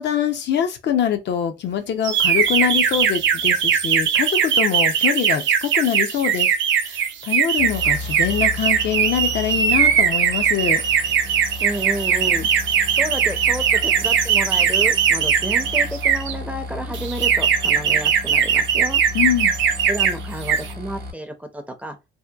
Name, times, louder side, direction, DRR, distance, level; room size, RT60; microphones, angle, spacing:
voice 1, 0.0-10.8 19.1-19.6, left 9 dB, 60° left, 0.5 m, -24 dB
sound 1, 2.0-16.3 16.9-20.1 20.4-20.7, right 7 dB, 70° right, 0.5 m, -20 dB
sound 2, 7.6-21.1, left 2 dB, 50° right, 0.8 m, -34 dB
voice 2, 11.6-12.5 12.9-19.0 19.9-22.0, right 1 dB, 5° right, 0.5 m, -31 dB
2.8 x 2.1 x 2.2 m
cardioid pair, 90°, 20 cm